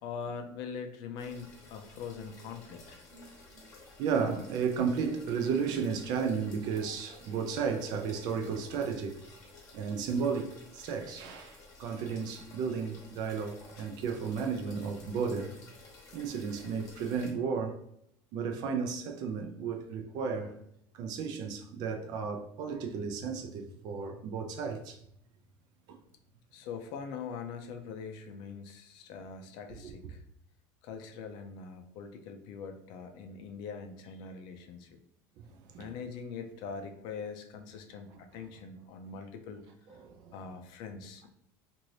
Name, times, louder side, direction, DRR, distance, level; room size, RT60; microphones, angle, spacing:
voice 1, 0.0-3.0 12.5-12.6 13.8-13.9 26.5-30.2 30.8-35.0 35.8-39.7 40.3-41.3, left 5 dB, 60° left, 0.4 m, -42 dB
sound 1, 1.2-17.3, left 3 dB, 40° left, 0.9 m, -54 dB
voice 2, 4.0-9.2 9.7-10.5 10.7-11.5 11.8-15.5 16.1-17.8 18.3-20.5 21.0-25.0 29.8-30.0 35.4-35.5 35.7-35.9 40.0-40.3, right 6 dB, 55° right, 0.4 m, -33 dB
2.8 x 2.6 x 3.1 m
cardioid pair, 150°, 8 cm